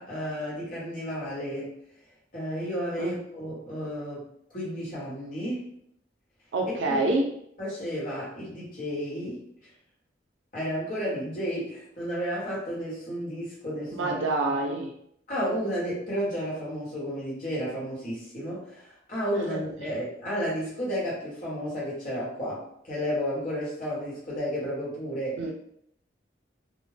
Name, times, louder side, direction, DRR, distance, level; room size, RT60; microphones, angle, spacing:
voice 1, 0.0-1.7 2.3-5.7 6.9-7.0 7.6-9.4 10.5-14.1 15.3-25.4, equal, 45° left, -7 dB, 1.1 m, -32 dB
voice 2, 6.5-7.3 13.9-14.9 19.5-19.6 25.4-25.5, right 2 dB, 85° right, 2 dB, 0.4 m, -26 dB
2.4 x 2.1 x 3.3 m, 0.71 s
head